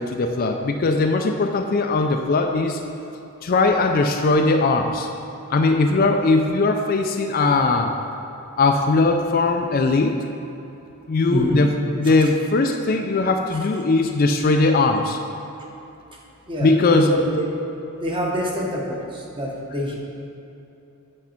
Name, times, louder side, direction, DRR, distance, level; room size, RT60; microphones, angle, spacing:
voice 1, 0.0-2.8 3.4-5.1 5.5-7.9 8.6-10.1 11.1-11.7 11.9-15.2 16.6-17.1, left 3 dB, 40° left, 4 dB, 0.4 m, -19 dB
voice 2, 11.3-11.6 12.0-12.1 16.5-17.5 18.0-19.9, equal, 25° right, -2 dB, 1.0 m, -26 dB
8.2 x 5.3 x 4.4 m, 2.9 s
head